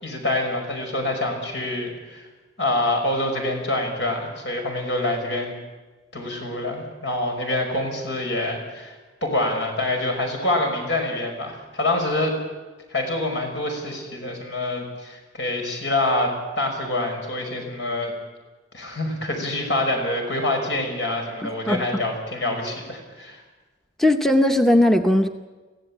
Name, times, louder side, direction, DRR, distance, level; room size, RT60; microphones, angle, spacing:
voice 1, 0.0-2.3 2.6-5.5 6.1-8.9 9.2-12.3 12.9-18.1 18.7-23.4, left 1 dB, 75° left, 3 dB, 5.7 m, -26 dB
voice 2, 21.4-22.0 24.0-25.3, left 1 dB, ahead, 5 dB, 0.8 m, -19 dB
23.0 x 16.0 x 8.8 m, 1.3 s
head